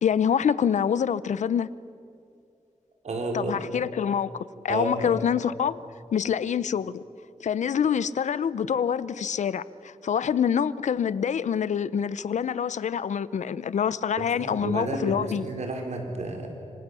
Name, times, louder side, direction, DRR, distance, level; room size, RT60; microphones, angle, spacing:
voice 1, 0.0-1.7 3.3-5.8 6.1-7.0 7.4-15.5, left 8 dB, 90° left, 18 dB, 0.7 m, -26 dB
voice 2, 3.0-3.6 4.7-5.1 14.2-16.5, right 2 dB, 70° right, 2 dB, 4.8 m, -31 dB
27.0 x 25.0 x 8.4 m, 2.5 s
wide cardioid pair, 120°, 12 cm